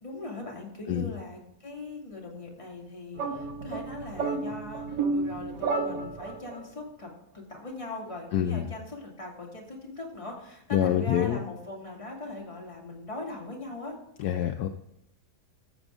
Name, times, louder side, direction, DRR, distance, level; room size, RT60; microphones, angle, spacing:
voice 1, 0.0-14.0, left 2 dB, 20° left, -2 dB, 2.3 m, -40 dB
sound 1, 3.2-6.6, right 3 dB, 85° right, 1.7 m, -31 dB
voice 2, 8.3-8.6 10.7-11.4 14.2-14.7, left 10 dB, 75° left, 6 dB, 1.1 m, -26 dB
14.0 x 7.1 x 3.6 m, 0.82 s
omnidirectional pair, 1.8 m